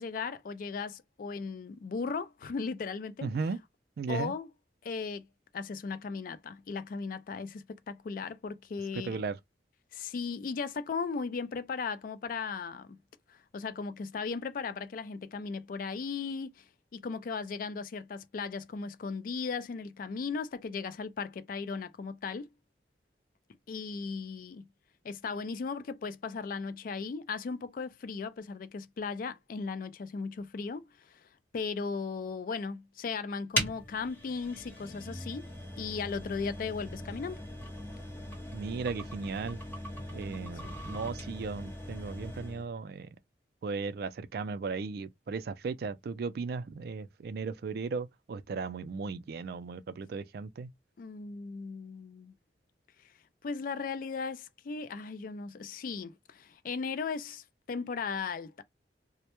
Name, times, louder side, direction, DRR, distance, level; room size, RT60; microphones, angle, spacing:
voice 1, 0.0-3.3 4.1-4.5 4.8-5.3 5.5-9.2 9.9-13.0 13.3-16.6 16.9-22.5 23.7-24.7 25.0-31.3 31.5-35.5 35.8-37.4 40.6-40.8 51.0-52.3 53.4-58.6, left 5 dB, 50° left, 0.3 m, -37 dB
voice 2, 3.2-3.6 4.0-4.3 8.9-9.4 38.5-39.6 40.1-43.1 43.6-50.7, right 4 dB, 60° right, 0.3 m, -36 dB
sound 1, 33.5-42.7, equal, 10° left, 0.8 m, -39 dB
2.1 x 2.1 x 2.9 m
head